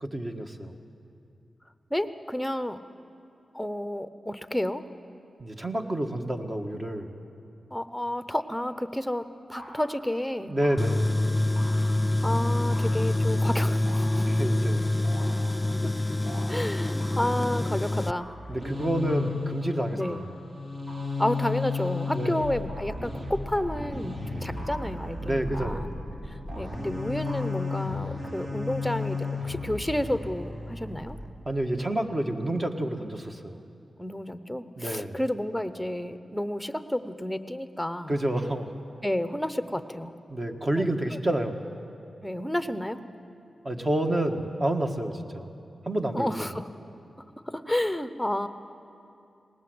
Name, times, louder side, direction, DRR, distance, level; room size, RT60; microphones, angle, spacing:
voice 1, 0.0-0.7 5.4-7.1 10.5-11.2 14.2-14.9 15.2-15.3 18.5-20.3 22.1-22.4 25.2-25.9 31.4-33.6 34.8-35.2 38.1-38.7 40.3-41.6 43.6-45.5 45.8-46.5, right 1 dB, 30° right, 4 dB, 1.6 m, -29 dB
voice 2, 1.9-2.8 3.5-4.8 7.7-9.2 9.5-10.5 12.2-14.2 15.8-15.9 16.5-18.3 19.9-20.2 21.2-26.0 26.6-31.2 34.0-38.1 39.0-40.1 40.8-40.9 41.1-41.2 42.2-43.0 46.1-46.7 47.5-48.5, left 1 dB, 5° left, 11 dB, 0.9 m, -31 dB
sound 1, 8.8-9.1 9.6-10.1 10.6-11.1 11.6-12.2 12.7-13.3 13.9-14.6 15.0-15.6 16.3-16.5 17.0-17.6 18.2-18.5 19.1-19.4 20.0-20.4 20.9-21.2 21.7-22.1 22.7-23.1 23.5-23.9 24.6-25.0 25.5-25.9 26.5-26.8 27.3-27.5, right 1 dB, 70° right, 6.2 m, -46 dB
Tools, 10.8-18.1, left 1 dB, 25° left, 0.4 m, -26 dB
sound 2, 18.2-31.3, left 4 dB, 45° right, 3.2 m, -34 dB
20.0 x 19.0 x 8.0 m, 2.6 s
cardioid pair, 70°, 0 cm